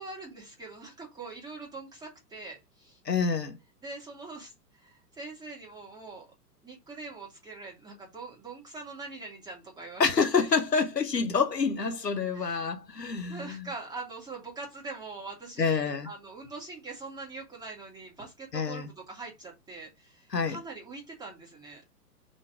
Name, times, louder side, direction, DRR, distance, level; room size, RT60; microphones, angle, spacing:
voice 1, 0.0-3.0 3.8-6.3 6.6-10.1 10.4-10.5 12.3-21.8, right 3 dB, 10° right, 2.9 m, -43 dB
voice 2, 3.0-3.6 10.0-13.7 15.6-16.1 18.5-18.9 20.3-20.6, left 5 dB, 80° left, 1.2 m, -27 dB
6.3 x 4.4 x 3.6 m
figure-of-eight pair, 110°, 48 cm